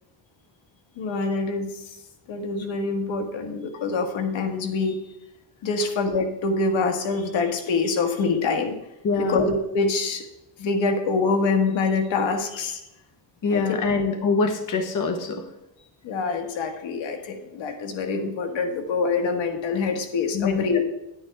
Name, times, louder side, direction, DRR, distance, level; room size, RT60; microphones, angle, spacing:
voice 1, 1.0-1.9 2.3-5.0 5.6-8.7 9.2-10.2 10.6-12.8 13.5-14.0 16.0-20.8, left 4 dB, 85° left, 5 dB, 1.6 m, -25 dB
voice 2, 9.0-9.4 13.4-15.4 20.3-20.8, left 4 dB, 45° left, 5 dB, 1.2 m, -25 dB
10.5 x 9.6 x 3.5 m, 0.88 s
cardioid pair, 165°, 45 cm